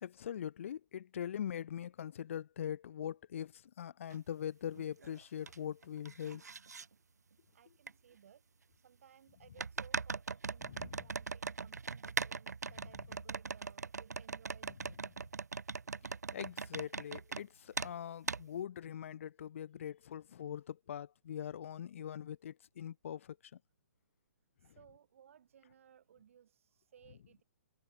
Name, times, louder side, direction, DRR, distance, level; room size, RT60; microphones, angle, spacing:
voice 1, 0.0-6.4 10.7-11.1 16.3-23.4, left 9 dB, 50° left, 0.6 m, -42 dB
sound 1, 4.1-4.2 4.7-5.6 5.8-6.8 7.9-8.0 9.6-17.4 17.7-17.9 18.3-18.4, right 5 dB, 80° right, 0.6 m, -40 dB
voice 2, 7.5-8.4 8.8-15.3 24.6-27.4, right 9 dB, 55° right, 7.5 m, -62 dB
figure-of-eight pair, 130°, 9 cm